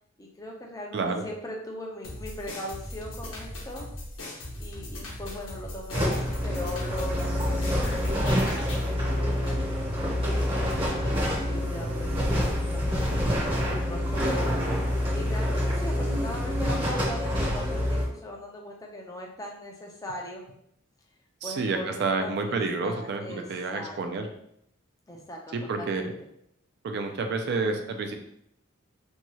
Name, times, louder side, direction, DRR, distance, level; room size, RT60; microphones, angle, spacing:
voice 1, 0.2-3.9 4.6-9.6 10.3-11.2 11.5-12.3 12.7-14.5 15.1-20.5 21.4-23.5 23.7-24.0 25.1-26.1, left 1 dB, 15° left, 0 dB, 0.4 m, -39 dB
voice 2, 0.9-1.2 21.4-24.3 25.5-26.1 26.8-28.1, right 3 dB, 55° right, 5 dB, 0.3 m, -29 dB
sound 1, 2.0-8.9, left 1 dB, 70° left, 0.8 m, -39 dB
sound 2, 5.9-18.0, equal, 25° right, 0.7 m, -27 dB
2.7 x 2.3 x 2.9 m, 0.74 s
head